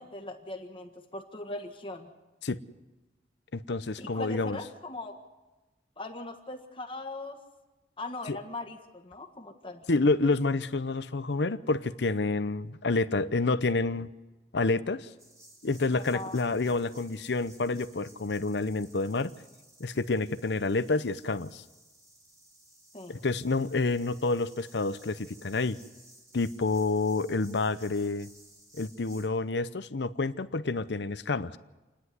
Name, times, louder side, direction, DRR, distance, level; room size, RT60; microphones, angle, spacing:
voice 1, 0.0-2.1 4.0-5.2 6.0-7.4 8.0-9.8 15.9-16.5 22.9-23.2, left 2 dB, 30° left, 5 dB, 1.6 m, -40 dB
voice 2, 3.5-4.6 8.3-8.4 9.9-14.1 14.5-15.1 15.6-19.3 19.8-21.6 23.1-25.8 26.3-28.3 28.8-31.6, left 3 dB, 75° left, 14 dB, 0.7 m, -28 dB
sound 1, 15.2-29.3, right 1 dB, 20° right, 3.3 m, -57 dB
28.5 x 10.0 x 9.6 m, 1.1 s
head